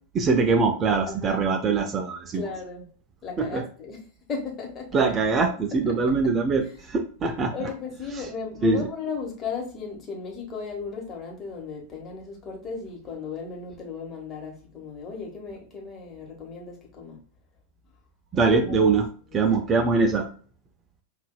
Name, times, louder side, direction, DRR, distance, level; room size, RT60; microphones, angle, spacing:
voice 1, 0.1-2.4 3.4-3.6 4.9-7.5 8.1-8.2 8.6-8.9 18.3-19.1 19.3-20.3, right 4 dB, 25° right, 0.5 m, -23 dB
voice 2, 1.1-1.4 2.3-2.9 3.2-4.9 5.9-6.0 7.5-17.2 18.4-18.9 19.3-19.4, left 5 dB, 25° left, 1.3 m, -36 dB
5.5 x 2.6 x 2.3 m
figure-of-eight pair, 90°, 0 cm